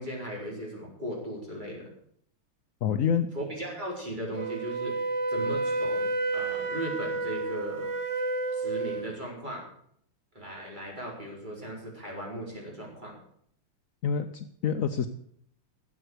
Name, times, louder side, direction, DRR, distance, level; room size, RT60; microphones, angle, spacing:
voice 1, 0.0-1.9 3.3-7.9 8.5-9.6 10.3-13.1, right 1 dB, 20° right, -2 dB, 4.7 m, -37 dB
voice 2, 2.8-3.3 14.0-15.1, left 7 dB, 80° left, 8 dB, 0.7 m, -27 dB
Wind instrument woodwind instrument, 4.4-9.1, right 3 dB, 55° right, 0.8 m, -30 dB
13.0 x 8.1 x 8.0 m, 0.67 s
omnidirectional pair, 2.4 m